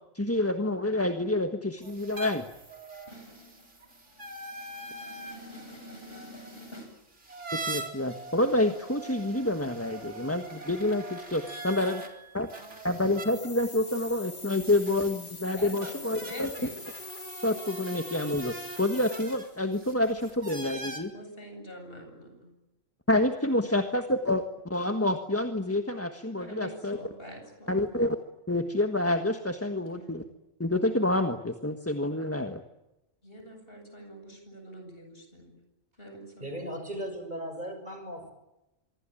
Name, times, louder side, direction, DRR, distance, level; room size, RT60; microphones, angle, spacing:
voice 1, 0.1-2.5 7.7-12.0 12.3-12.5 12.8-16.5 17.4-21.1 23.1-27.0 27.7-28.2 28.5-30.2 30.6-32.6, left 1 dB, 10° left, 6 dB, 1.4 m, -28 dB
sound 1, 1.8-12.1 12.5-21.0, right 2 dB, 60° right, 4.3 m, -43 dB
voice 2, 3.1-6.9 11.5-12.6 15.6-16.8 21.1-22.5 23.6-23.7 26.3-27.8 29.7-30.3 33.2-35.5 36.0-36.6, equal, 45° left, 4 dB, 8.2 m, -46 dB
sound 2, 13.2-19.6, left 3 dB, 60° left, 4.6 m, -44 dB
voice 3, 36.4-38.3, equal, 35° right, 6 dB, 6.8 m, -37 dB
26.0 x 23.5 x 9.0 m, 0.94 s
omnidirectional pair, 1.4 m